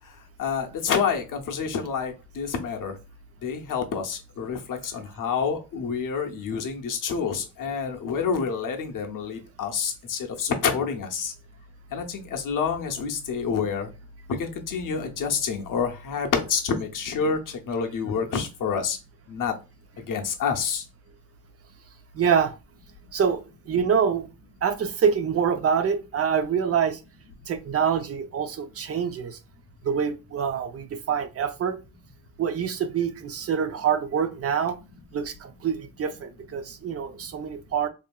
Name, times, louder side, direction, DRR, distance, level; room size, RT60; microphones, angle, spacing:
voice 1, 0.4-3.0 3.4-11.3 11.9-13.9 14.4-19.0 19.3-19.5 20.0-20.8, left 6 dB, 50° left, 3 dB, 0.7 m, -28 dB
voice 2, 22.1-22.5 23.1-24.3 24.6-27.0 27.5-29.4 29.8-31.8 32.4-34.7 35.1-37.9, right 7 dB, 40° right, 9 dB, 0.4 m, -25 dB
2.7 x 2.5 x 2.2 m, 0.29 s
cardioid pair, 105°, 40 cm